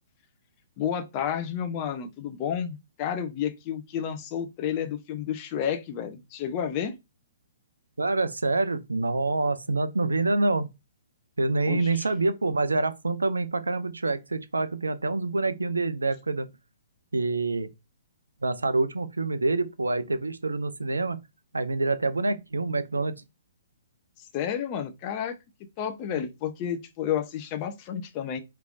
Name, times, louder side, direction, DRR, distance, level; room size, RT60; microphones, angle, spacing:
voice 1, 0.8-7.0 11.7-12.0 24.3-25.3 25.8-28.4, left 9 dB, 35° left, 0.8 m, -31 dB
voice 2, 8.0-10.7 11.4-16.5 17.1-17.7 18.4-21.2 21.5-23.1, right 3 dB, 85° right, 0.6 m, -26 dB
5.0 x 3.3 x 2.5 m
figure-of-eight pair, 125°, 0 cm